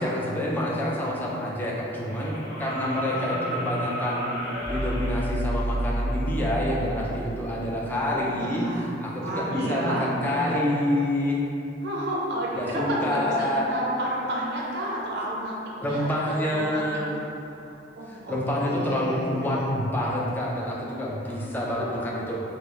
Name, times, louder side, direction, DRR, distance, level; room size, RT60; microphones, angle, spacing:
voice 1, 0.0-4.2 4.7-8.6 9.0-11.4 12.5-13.6 15.8-17.1 18.3-22.4, left 1 dB, 10° left, -5 dB, 0.4 m, -27 dB
sound 1, 2.0-5.2 7.0-7.1, equal, 30° left, 0.9 m, -34 dB
sound 2, 4.5-7.7, right 1 dB, 55° left, 1.1 m, -29 dB
voice 2, 8.0-8.9 9.2-10.7 11.8-15.5 15.8-16.8 17.1-17.2 17.6-18.4 18.7-19.6 21.3-21.4 21.8-21.9, right 1 dB, 60° right, -4 dB, 0.6 m, -31 dB
4.6 x 2.0 x 3.0 m, 2.8 s
head